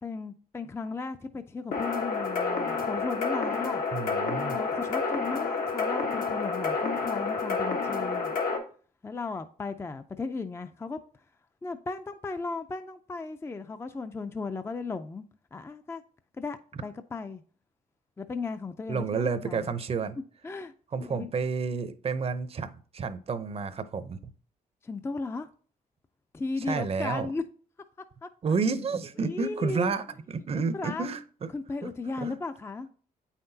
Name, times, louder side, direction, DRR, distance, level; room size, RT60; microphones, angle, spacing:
voice 1, 0.0-3.8 4.5-8.4 9.0-11.0 11.6-15.2 15.5-16.0 16.4-17.4 18.2-19.7 20.4-20.7 21.0-21.3 24.8-25.5 26.3-27.4 28.2-28.3 29.2-29.9 30.5-31.1 31.5-32.9, left 4 dB, 15° left, 0.4 m, -36 dB
sound 1, 1.7-8.6, left 4 dB, 75° left, 1.2 m, -29 dB
voice 2, 3.9-4.6 18.9-20.2 20.9-24.2 26.7-27.3 28.4-31.5 31.8-31.9 32.2-32.4, right 5 dB, 40° right, 0.6 m, -30 dB
8.3 x 5.8 x 2.7 m
cardioid pair, 105°, 15 cm